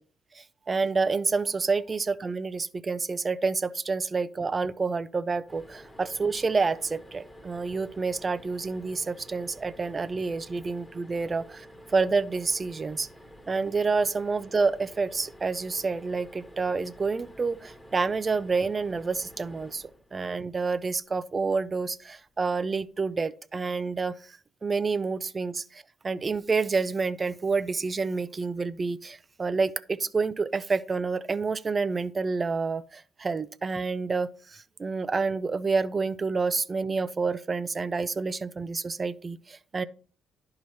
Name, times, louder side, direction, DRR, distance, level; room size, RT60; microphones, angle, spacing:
voice 1, 0.4-11.7 11.9-13.1 13.5-24.1 24.6-39.8, right 4 dB, 30° right, 0.5 m, -28 dB
sound 1, 5.5-20.7 22.4-22.6 22.9-23.0, equal, 10° left, 1.4 m, -50 dB
11.0 x 4.8 x 4.1 m
cardioid pair, 80°, 0 cm